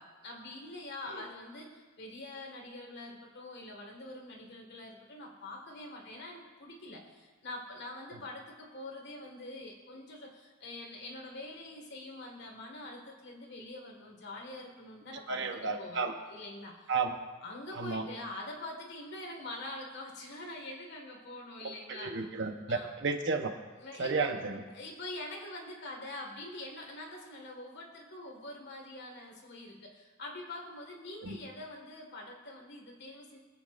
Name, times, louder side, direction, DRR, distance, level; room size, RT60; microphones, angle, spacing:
voice 1, 0.0-16.0 16.3-16.9 17.4-22.3 22.7-22.9 23.8-24.3 24.7-33.4, left 2 dB, 60° left, 1 dB, 1.9 m, -45 dB
voice 2, 15.3-16.1 16.9-17.1 17.8-18.1 22.0-23.5 24.0-24.6 31.2-31.3, right 4 dB, 65° right, 5 dB, 1.0 m, -32 dB
21.0 x 7.9 x 2.6 m, 1.3 s
head